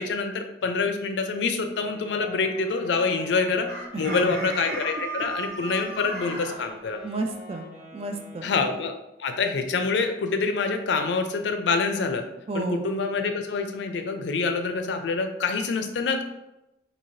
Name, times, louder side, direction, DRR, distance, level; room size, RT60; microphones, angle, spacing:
voice 1, 0.0-3.7 4.0-7.0 8.4-8.9 9.2-12.2 12.5-16.2, left 4 dB, 80° left, 6 dB, 0.4 m, -26 dB
Wind instrument woodwind instrument, 1.7-8.9, equal, 15° right, 1.0 m, -46 dB
Chicken rooster, 3.7-6.6, right 2 dB, 55° right, 0.9 m, -34 dB
voice 2, 3.9-4.5 7.0-8.5 12.5-12.9, right 2 dB, 35° right, 4 dB, 0.3 m, -32 dB
2.8 x 2.7 x 3.0 m, 0.92 s
head